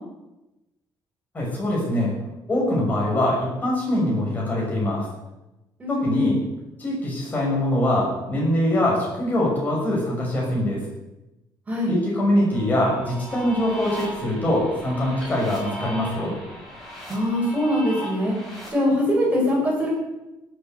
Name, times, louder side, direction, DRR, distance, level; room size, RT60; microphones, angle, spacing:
voice 1, 1.3-2.1 2.5-5.0 5.9-6.4 6.8-10.8 11.9-16.3, left 1 dB, 20° left, -4 dB, 6.1 m, -23 dB
voice 2, 5.8-6.4 11.7-12.0 17.1-18.3 18.7-19.9, left 1 dB, 15° right, -3 dB, 6.3 m, -22 dB
sound 1, 12.5-18.7, equal, 5° left, 6.6 m, -37 dB
17.0 x 8.5 x 6.8 m, 0.98 s
cardioid pair, 160°, 8 cm